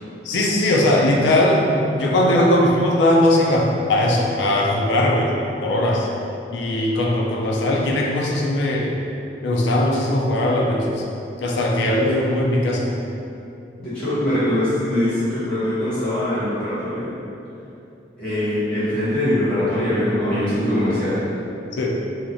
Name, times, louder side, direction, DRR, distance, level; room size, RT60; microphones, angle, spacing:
voice 1, 0.2-5.3 5.6-6.1 6.5-8.9 9.4-11.0 11.4-12.9 21.8-22.0, left 1 dB, 80° left, -1 dB, 0.4 m, -19 dB
voice 2, 13.8-17.1 18.2-21.3, left 1 dB, 5° left, -16 dB, 1.1 m, -22 dB
2.9 x 2.3 x 2.6 m, 2.8 s
head